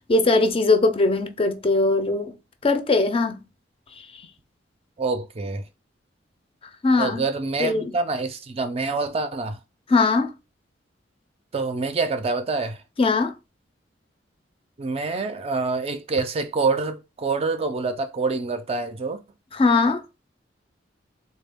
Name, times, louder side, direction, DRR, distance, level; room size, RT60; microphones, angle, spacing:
voice 1, 0.1-2.3 2.6-3.4 6.8-7.2 7.6-7.9 9.9-10.3 13.0-13.3 19.5-20.0, left 3 dB, 30° left, 0.4 m, -20 dB
voice 2, 5.0-5.6 7.0-9.6 11.5-12.8 14.8-19.2, right 3 dB, 35° right, 0.4 m, -26 dB
3.5 x 2.3 x 3.4 m
head